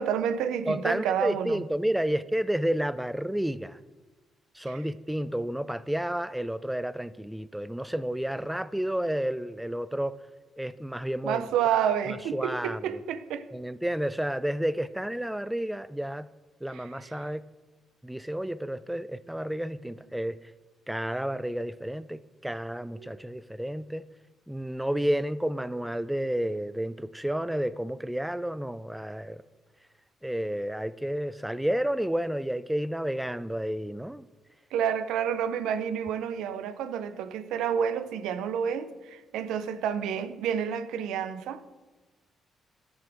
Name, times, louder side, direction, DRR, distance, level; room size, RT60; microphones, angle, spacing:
voice 1, 0.0-1.6 4.7-4.8 11.2-13.5 16.7-17.3 23.0-23.2 34.7-41.8, right 8 dB, 90° right, 0.6 m, -30 dB
voice 2, 0.7-3.8 4.6-10.2 10.6-11.5 12.3-13.0 13.5-16.3 16.6-17.4 18.0-20.4 20.9-24.0 24.5-29.4 30.2-34.3, right 1 dB, 5° right, 0.3 m, -31 dB
13.5 x 7.2 x 3.5 m
cardioid pair, 90°, 0 cm